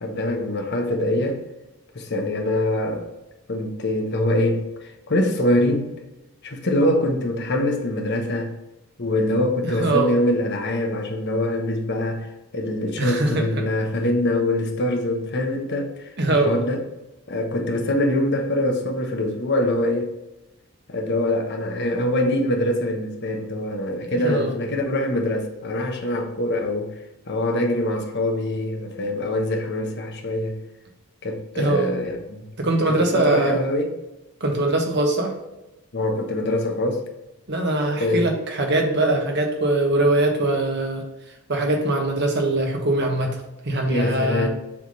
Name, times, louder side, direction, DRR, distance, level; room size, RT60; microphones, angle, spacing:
voice 1, 0.0-1.4 1.9-3.1 3.5-5.9 6.4-8.5 9.0-16.8 17.3-20.1 20.9-26.9 27.3-30.6 31.2-32.5 32.9-33.9 35.9-37.0 38.0-38.2 43.9-44.5, left 1 dB, 55° left, 1.0 m, -24 dB
voice 2, 9.6-10.1 13.0-13.6 16.2-16.6 24.2-24.5 31.6-31.9 32.6-33.6 34.4-35.3 37.5-41.0 41.5-44.5, right 2 dB, 55° right, 1.2 m, -22 dB
7.0 x 3.5 x 4.0 m
head